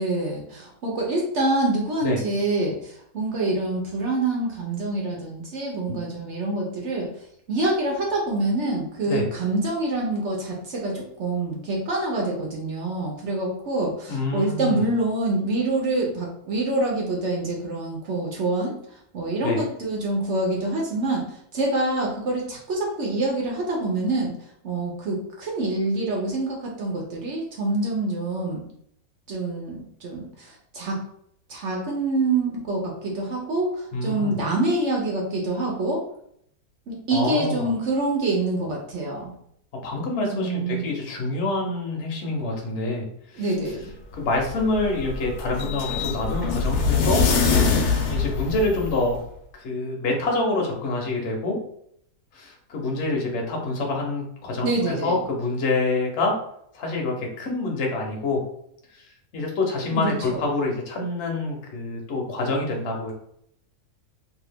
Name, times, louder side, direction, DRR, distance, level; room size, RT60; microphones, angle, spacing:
voice 1, 0.0-7.1 7.5-24.3 24.6-28.6 29.3-31.0 31.5-36.0 36.9-39.3 40.3-40.8 43.4-43.9 54.6-55.1 59.9-60.4, right 2 dB, 60° right, -1 dB, 0.8 m, -26 dB
voice 2, 14.1-14.9 19.4-19.6 33.9-34.4 37.1-37.7 39.8-43.5 44.2-47.3 48.0-49.2 49.6-51.6 52.3-56.3 56.7-58.4 58.9-59.1 59.3-63.1, left 2 dB, 55° left, 0 dB, 0.9 m, -26 dB
sound 1, 44.1-49.2, left 5 dB, 85° left, 1.1 m, -24 dB
2.8 x 2.4 x 3.4 m, 0.70 s
omnidirectional pair, 1.6 m